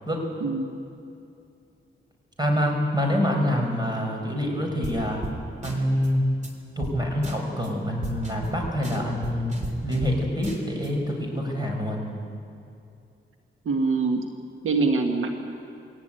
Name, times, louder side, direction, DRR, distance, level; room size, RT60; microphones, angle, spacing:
voice 1, 0.4-0.7 13.6-14.2 14.6-15.3, right 4 dB, 85° right, 4 dB, 1.6 m, -24 dB
voice 2, 2.4-5.2 5.6-6.2 6.8-9.6 9.8-12.0, equal, 20° right, 1 dB, 5.6 m, -26 dB
sound 1, 4.8-5.0 5.2-5.4 5.6-6.1 6.4-6.5 6.8-7.0 7.2-7.7 8.0-10.2 10.4-10.9, right 1 dB, 35° right, 3.6 m, -34 dB
21.5 x 18.0 x 9.1 m, 2.6 s
cardioid pair, 85°, 21 cm